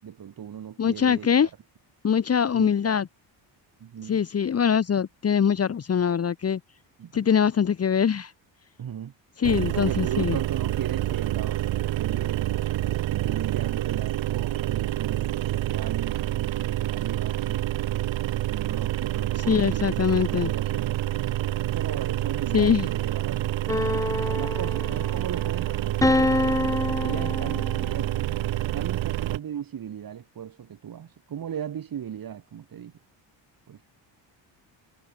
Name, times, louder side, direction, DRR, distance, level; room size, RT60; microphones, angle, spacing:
voice 1, 0.0-1.3 2.5-3.0 3.8-4.2 7.0-7.3 8.8-9.1 9.7-12.6 13.1-17.8 18.5-21.1 21.7-26.3 27.0-28.1 28.7-32.9 33.7-33.8, right 9 dB, 50° right, 6.1 m, -37 dB
voice 2, 0.8-1.5 2.0-3.1 4.1-6.6 7.1-8.3 9.4-10.4 19.5-20.5 22.5-22.9, left 7 dB, 30° left, 1.4 m, -23 dB
sound 1, 9.4-29.4, right 14 dB, 75° right, 5.0 m, -28 dB
sound 2, 23.7-25.3 26.0-28.0, left 2 dB, 5° left, 0.8 m, -26 dB
cardioid pair, 135°, 45 cm